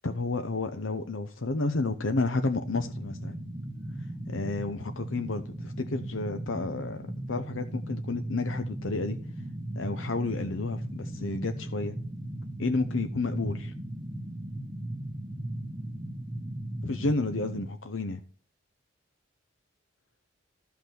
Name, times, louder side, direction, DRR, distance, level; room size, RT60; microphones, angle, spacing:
voice 1, 0.0-3.4 4.3-7.0 7.3-9.2 9.7-12.0 12.6-13.7 16.8-18.2, left 3 dB, 70° left, 0.8 m, -31 dB
sound 1, 2.6-17.7, right 1 dB, 15° right, 0.9 m, -37 dB
13.5 x 5.9 x 6.0 m
head